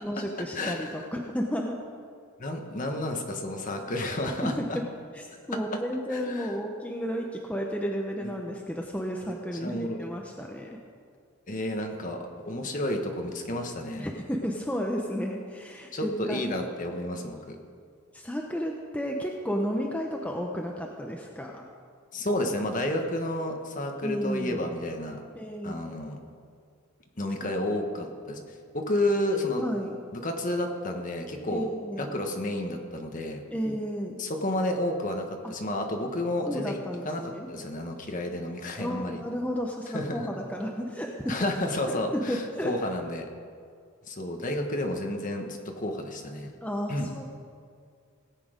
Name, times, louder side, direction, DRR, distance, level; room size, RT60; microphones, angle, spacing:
voice 1, 0.0-1.8 4.4-4.8 5.1-10.7 14.0-16.4 18.1-21.6 24.0-24.6 25.3-25.8 27.4-27.5 29.6-30.0 31.5-32.1 33.5-34.2 36.5-37.5 38.8-41.1 42.1-42.7 46.6-47.2, equal, 5° left, 0 dB, 0.7 m, -32 dB
voice 2, 0.5-0.9 2.4-4.8 6.1-6.6 8.2-8.3 9.6-10.0 11.5-12.2 12.5-14.1 15.9-17.6 22.1-25.2 25.6-26.2 27.2-28.4 28.7-29.6 30.1-31.7 32.0-33.4 34.2-36.8 37.0-39.2 39.9-40.3 41.3-43.3 44.1-46.5 46.9-47.1, left 1 dB, 40° left, 3 dB, 1.3 m, -31 dB
17.5 x 8.5 x 5.1 m, 2.2 s
head